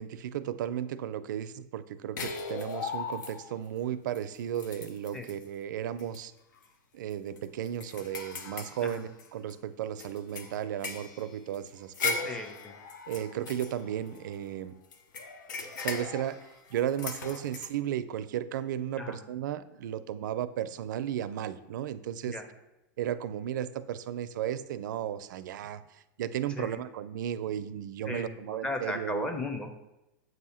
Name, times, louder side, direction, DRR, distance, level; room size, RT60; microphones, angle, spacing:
voice 1, 0.0-6.3 6.9-12.3 13.1-14.7 15.8-16.4 16.7-22.4 23.0-25.8 26.2-29.3, right 10 dB, 80° right, 13 dB, 0.4 m, -34 dB
sound 1, 2.2-3.7 4.2-4.3 4.6-5.4 6.0-6.2 6.6-6.7 7.1-9.5 10.0-14.5 14.9-17.7, left 5 dB, 85° left, 0.7 m, -38 dB
voice 2, 12.2-12.7 19.0-19.2 22.2-22.4 26.6-26.8 28.0-29.7, left 2 dB, 10° left, 5 dB, 0.7 m, -36 dB
7.7 x 2.7 x 5.6 m, 0.96 s
supercardioid pair, 135°, 10 cm